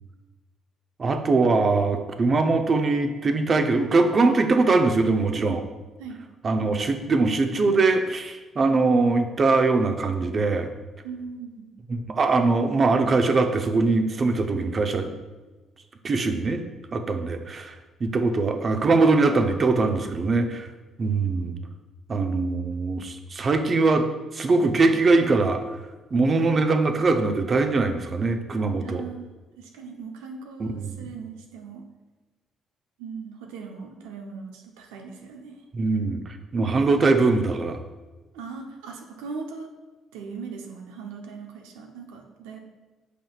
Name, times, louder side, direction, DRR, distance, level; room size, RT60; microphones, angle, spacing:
voice 1, 1.0-5.6 6.4-10.7 11.9-15.1 16.0-16.6 16.9-17.7 18.0-20.7 21.0-21.5 22.1-24.1 24.3-25.6 26.1-29.0 30.6-31.0 35.7-36.2 36.5-37.8, right 3 dB, 45° right, 6 dB, 0.8 m, -22 dB
voice 2, 11.0-11.7 28.8-31.8 33.0-35.6 38.3-39.7 40.1-42.6, right 5 dB, 80° right, 2 dB, 0.8 m, -39 dB
8.2 x 5.8 x 2.4 m, 1.2 s
hypercardioid pair, 50°, 0 cm